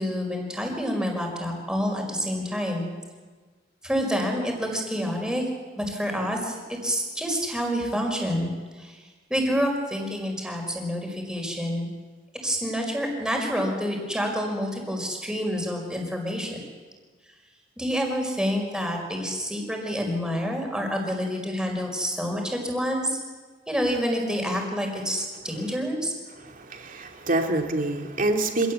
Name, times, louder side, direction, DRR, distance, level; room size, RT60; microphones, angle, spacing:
voice 1, 0.0-2.9 3.8-5.4 5.7-9.0 9.3-11.9 12.4-16.6 17.8-23.2 23.7-26.1, equal, 5° right, 1 dB, 5.1 m, -28 dB
voice 2, 26.4-28.7, right 2 dB, 50° right, 3 dB, 2.9 m, -26 dB
26.5 x 17.5 x 8.4 m, 1.4 s
head